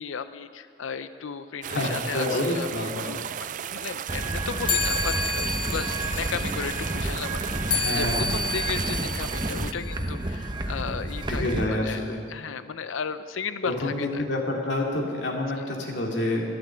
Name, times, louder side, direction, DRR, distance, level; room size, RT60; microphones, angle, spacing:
voice 1, 0.0-3.2 3.7-14.3, left 6 dB, 90° left, 12 dB, 0.5 m, -35 dB
sound 1, 1.6-9.7, right 9 dB, 40° right, 0.3 m, -35 dB
voice 2, 1.7-3.0 7.7-8.4 11.3-12.2 13.6-16.4, left 1 dB, 65° left, -1 dB, 2.3 m, -28 dB
sound 2, 4.1-11.7, right 1 dB, 25° right, 0.9 m, -31 dB
sound 3, 4.6-10.5, left 3 dB, 25° left, 0.8 m, -31 dB
12.0 x 12.0 x 7.4 m, 2.1 s
head